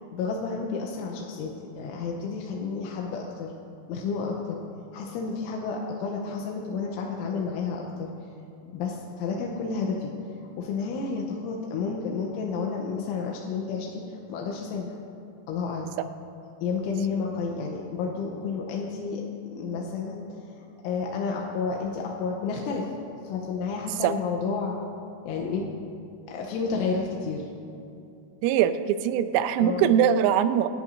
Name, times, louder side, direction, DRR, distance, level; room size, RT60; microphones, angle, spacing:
voice 1, 0.0-3.5 3.9-4.6 4.9-8.1 8.7-10.1 10.6-15.0 15.5-15.9 16.6-19.2 19.5-22.9 23.2-24.8 25.2-25.7 26.3-27.5 29.6-29.9, left 5 dB, 85° left, -1 dB, 3.3 m, -31 dB
voice 2, 28.4-30.7, right 9 dB, 85° right, 11 dB, 3.0 m, -22 dB
27.5 x 11.5 x 2.7 m, 2.6 s
omnidirectional pair, 5.7 m